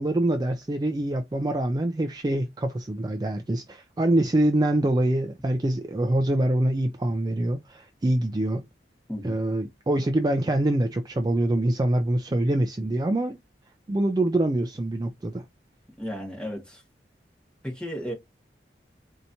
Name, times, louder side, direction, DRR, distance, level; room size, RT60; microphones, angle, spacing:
voice 1, 0.0-8.7 9.2-13.4 13.9-15.4, right 1 dB, 20° right, 0.3 m, -25 dB
voice 2, 16.0-16.8 17.6-18.1, equal, 5° left, 1.6 m, -34 dB
4.5 x 2.8 x 2.7 m
head